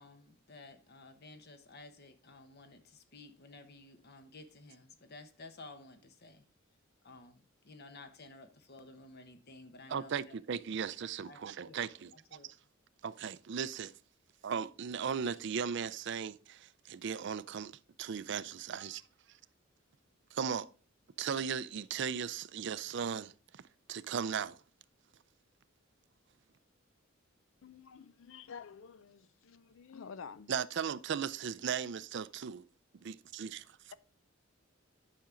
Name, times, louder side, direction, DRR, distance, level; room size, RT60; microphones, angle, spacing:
voice 1, 0.0-6.5 7.0-10.3 11.2-11.8 12.1-12.5, left 2 dB, 50° left, 1.1 m, -54 dB
voice 2, 9.9-12.4 13.0-13.9 14.4-19.0 19.3-19.4 20.3-20.7 21.2-23.6 23.9-24.6 30.5-32.7 33.0-33.9, right 7 dB, 60° right, 0.4 m, -37 dB
voice 3, 27.6-30.5, left 6 dB, 75° left, 0.5 m, -50 dB
10.0 x 6.0 x 3.8 m
head